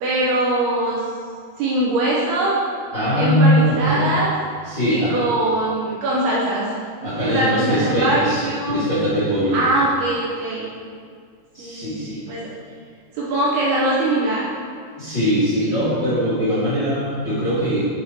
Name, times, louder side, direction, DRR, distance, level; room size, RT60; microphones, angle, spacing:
voice 1, 0.0-1.0 1.6-2.6 3.2-4.3 4.9-6.9 7.2-8.8 9.5-10.8 11.6-12.5 13.2-14.5, right 1 dB, 70° right, -5 dB, 2.6 m, -22 dB
voice 2, 2.9-4.0 4.6-5.1 7.0-9.6 11.5-12.2 15.0-17.8, equal, 35° left, -11 dB, 1.8 m, -21 dB
11.5 x 4.7 x 4.4 m, 2.1 s
omnidirectional pair, 5.4 m